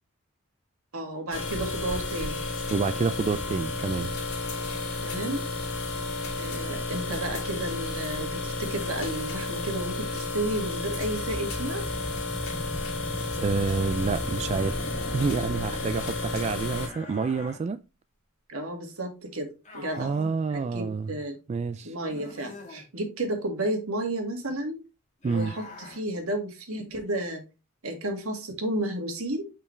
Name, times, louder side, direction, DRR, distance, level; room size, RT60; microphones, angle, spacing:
voice 1, 0.9-2.4 5.0-5.5 6.4-11.8 18.5-20.1 20.5-21.4 21.8-24.8 25.2-27.4 27.8-29.4, right 1 dB, 75° right, 2.0 m, -32 dB
sound 1, 1.3-16.9, left 3 dB, 80° left, 2.7 m, -32 dB
voice 2, 2.7-4.1 13.4-17.8 20.0-21.1 21.5-21.9 25.2-25.5, right 4 dB, 30° right, 0.3 m, -28 dB
sound 2, 10.6-16.9, left 1 dB, 15° right, 3.0 m, -39 dB
sound 3, 16.7-17.6 19.6-20.4 22.0-22.9 25.2-26.0, left 3 dB, 35° left, 2.5 m, -44 dB
6.9 x 5.6 x 3.3 m
head